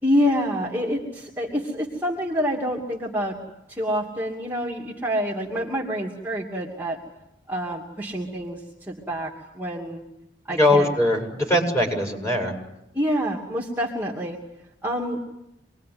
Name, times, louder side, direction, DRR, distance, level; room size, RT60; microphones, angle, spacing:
voice 1, 0.0-3.3 3.7-7.0 7.5-10.0 10.5-10.9 12.9-14.4 14.8-15.3, equal, 10° right, -2 dB, 2.7 m, -27 dB
voice 2, 10.5-12.5, left 1 dB, 15° left, 1 dB, 7.0 m, -21 dB
27.0 x 21.5 x 9.5 m, 0.89 s
head